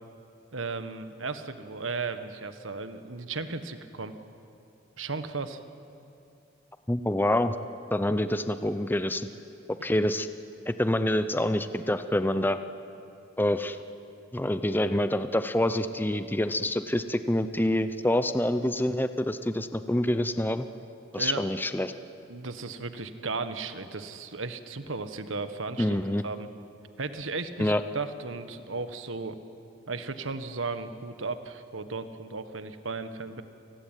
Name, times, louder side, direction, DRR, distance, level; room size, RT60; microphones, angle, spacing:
voice 1, 0.5-4.1 5.0-5.6 9.9-10.0 21.2-21.4 22.3-26.0 26.2-26.5 27.0-29.4 29.9-33.4, right 4 dB, 80° right, 10 dB, 1.5 m, -35 dB
voice 2, 6.9-7.6 7.9-9.3 9.8-10.3 10.7-12.6 13.4-13.8 14.3-20.6 21.1-21.9 25.8-26.2 27.6-27.8, left 1 dB, 10° left, 11 dB, 0.7 m, -26 dB
28.5 x 20.0 x 9.1 m, 2.7 s
head